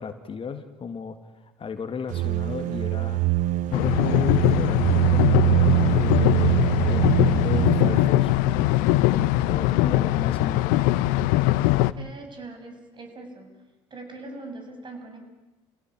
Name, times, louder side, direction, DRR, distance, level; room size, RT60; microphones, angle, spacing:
voice 1, 0.0-3.2 3.7-10.8, left 5 dB, 35° left, 8 dB, 2.0 m, -35 dB
sound 1, 2.1-8.1, right 16 dB, 60° right, 1.0 m, -23 dB
sound 2, 3.7-11.9, left 15 dB, 70° left, 0.8 m, -21 dB
voice 2, 11.8-13.6 13.9-15.3, right 2 dB, 30° right, 5 dB, 6.9 m, -41 dB
28.5 x 16.5 x 8.9 m, 1.0 s
hypercardioid pair, 70°, 15 cm